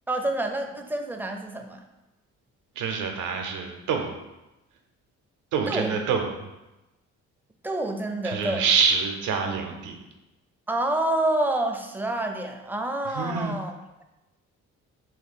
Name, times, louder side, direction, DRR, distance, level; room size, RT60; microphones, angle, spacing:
voice 1, 0.1-1.8 5.7-5.9 7.6-8.6 10.7-14.0, right 1 dB, 5° right, 4 dB, 0.4 m, -28 dB
voice 2, 2.8-4.1 5.5-6.2 8.2-10.0 13.1-13.6, right 5 dB, 90° right, 4 dB, 0.7 m, -26 dB
2.9 x 2.9 x 4.2 m, 1.0 s
cardioid pair, 90°, 30 cm